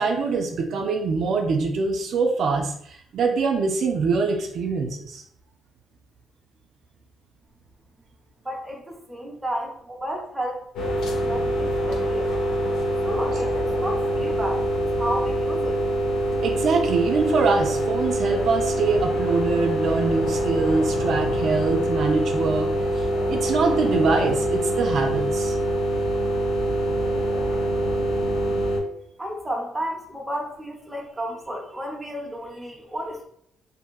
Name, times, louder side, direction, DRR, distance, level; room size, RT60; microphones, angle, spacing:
voice 1, 0.0-5.2 16.4-25.6, right 4 dB, 65° right, 2 dB, 0.4 m, -24 dB
voice 2, 8.4-12.3 13.0-15.8 29.2-33.3, equal, 15° right, 0 dB, 0.6 m, -32 dB
sound 1, 10.8-28.8, right 1 dB, 85° left, 0.6 m, -24 dB
2.8 x 2.5 x 2.3 m, 0.69 s
cardioid pair, 90°, 0 cm